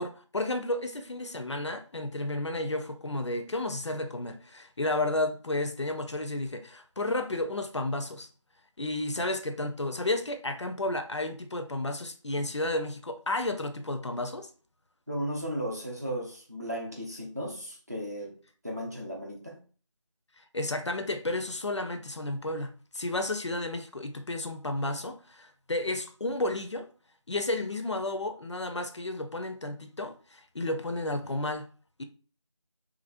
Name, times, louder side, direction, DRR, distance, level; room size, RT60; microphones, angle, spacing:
voice 1, 0.0-8.3 8.8-14.5 20.4-26.9 27.3-31.7 32.0-32.1, left 2 dB, 60° left, 0.4 m, -32 dB
voice 2, 15.1-18.4 18.6-19.6, equal, 30° right, 0.6 m, -35 dB
3.0 x 2.5 x 2.4 m
figure-of-eight pair, 175°, 16 cm